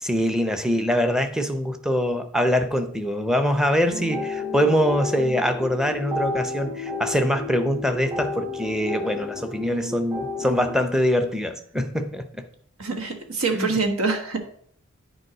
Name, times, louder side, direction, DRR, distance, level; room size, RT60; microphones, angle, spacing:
voice 1, 0.0-12.5 13.5-13.7, equal, 5° right, 7 dB, 0.6 m, -23 dB
sound 1, 3.9-10.8, left 3 dB, 25° right, 2.2 m, -32 dB
voice 2, 12.8-14.5, right 3 dB, 80° right, 5 dB, 1.2 m, -25 dB
9.7 x 4.6 x 4.8 m, 0.62 s
head